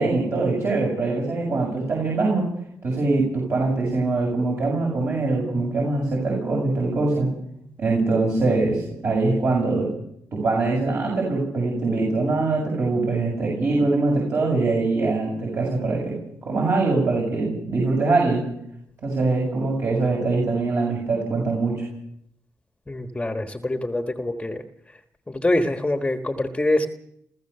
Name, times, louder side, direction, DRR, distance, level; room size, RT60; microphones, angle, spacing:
voice 1, 0.0-2.4 2.8-7.3 7.8-9.9 10.3-16.2 16.4-18.4 19.0-21.9, right 3 dB, 50° right, -2 dB, 7.1 m, -23 dB
voice 2, 22.9-24.6 25.3-26.9, left 1 dB, 15° left, 6 dB, 1.4 m, -24 dB
27.0 x 14.5 x 6.8 m, 0.75 s
cardioid pair, 95°, 6 cm